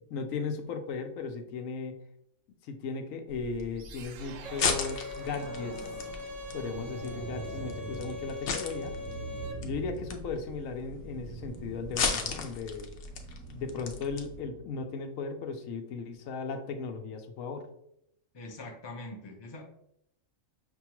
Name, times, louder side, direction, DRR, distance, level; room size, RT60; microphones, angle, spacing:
voice 1, 0.0-2.0 2.6-6.0 6.5-8.9 9.6-12.9 13.5-17.7, left 4 dB, 90° left, 6 dB, 1.0 m, -36 dB
sound 1, 3.3-14.3, left 5 dB, 65° left, 0.9 m, -37 dB
sound 2, 3.8-14.9, right 5 dB, 75° right, 0.9 m, -45 dB
Bowed string instrument, 4.4-9.5, left 3 dB, 45° right, 0.5 m, -41 dB
voice 2, 18.3-19.6, left 2 dB, 30° left, 2 dB, 0.5 m, -43 dB
6.0 x 2.3 x 2.9 m, 0.76 s
omnidirectional pair, 1.4 m